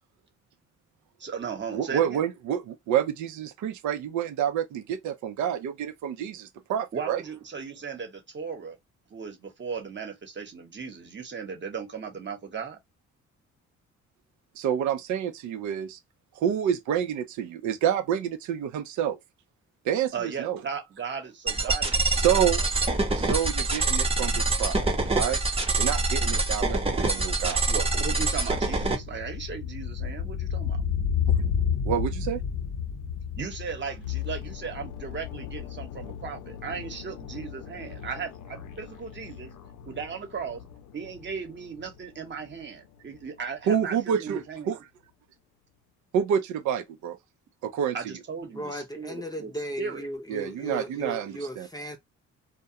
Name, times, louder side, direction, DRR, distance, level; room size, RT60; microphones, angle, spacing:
voice 1, 1.2-2.2 6.9-8.8 9.1-12.8 20.1-22.4 27.7-30.8 33.4-39.5 39.9-40.6 40.9-44.8 47.9-49.5 49.8-50.0, right 6 dB, 40° right, 1.0 m, -36 dB
voice 2, 1.7-7.2 14.6-16.0 16.4-19.2 19.8-20.6 22.0-22.6 23.1-24.8 25.1-25.4 25.8-27.6 31.8-32.4 43.7-44.4 44.7-44.8 46.1-47.2 47.6-48.0 50.3-51.7, right 9 dB, 75° right, 0.5 m, -28 dB
sound 1, 21.5-29.0, right 2 dB, 20° right, 0.9 m, -25 dB
sound 2, 26.5-35.5 35.8-35.9, left 7 dB, 50° left, 0.7 m, -31 dB
sound 3, 34.0-44.0 44.3-44.5, left 11 dB, 85° left, 0.6 m, -41 dB
voice 3, 48.5-52.0, equal, 15° left, 0.6 m, -36 dB
2.3 x 2.2 x 2.7 m
cardioid pair, 90°, 30 cm